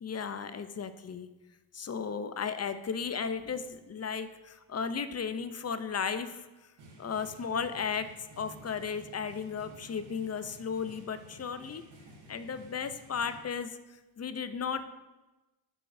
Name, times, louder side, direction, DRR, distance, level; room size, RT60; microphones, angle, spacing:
voice 1, 0.0-1.3 1.7-6.4 7.0-8.1 8.4-11.8 12.3-13.7 14.2-14.8, left 6 dB, 35° left, 11 dB, 0.6 m, -35 dB
sound 1, 6.8-13.4, right 1 dB, 60° right, 1.5 m, -53 dB
11.5 x 4.6 x 2.7 m, 1.1 s
supercardioid pair, 45°, 46 cm